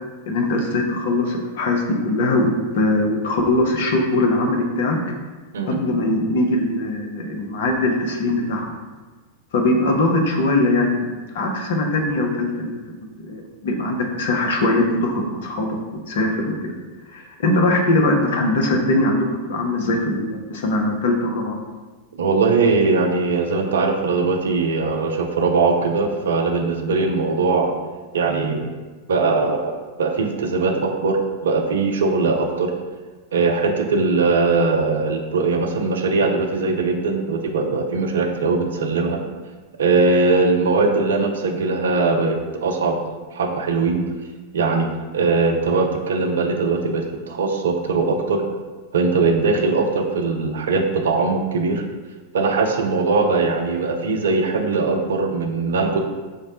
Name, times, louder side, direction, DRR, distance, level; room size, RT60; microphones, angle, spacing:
voice 1, 0.3-2.5 2.7-5.0 5.7-8.7 9.5-11.1 11.3-12.8 13.2-15.8 16.1-16.7 17.1-21.6, left 2 dB, 55° left, 2 dB, 0.5 m, -21 dB
voice 2, 22.1-27.7 28.1-28.7 29.1-31.2 31.4-32.7 33.3-39.2 39.8-43.0 43.3-44.1 44.5-48.4 48.9-51.8 52.3-56.0, right 4 dB, 65° right, 4 dB, 0.3 m, -20 dB
4.9 x 2.0 x 2.7 m, 1.3 s
figure-of-eight pair, 90°, 0 cm